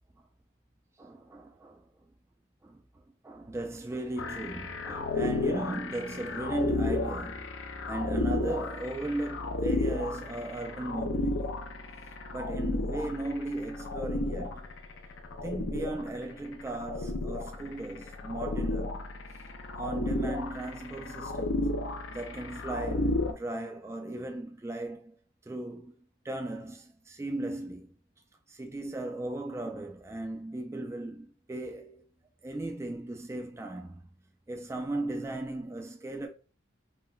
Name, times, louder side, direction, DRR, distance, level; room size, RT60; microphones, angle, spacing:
voice 1, 1.0-1.8 2.6-2.8 3.2-7.5 7.9-11.5 12.3-14.6 15.4-19.0 19.8-21.7 22.1-25.1 25.5-25.9 26.2-27.9 28.5-32.0 32.4-34.0 34.5-36.3, right 2 dB, 15° right, 0.3 m, -36 dB
Seamless Walooper, 4.2-23.3, left 2 dB, 75° left, 0.5 m, -33 dB
3.6 x 2.2 x 2.3 m
head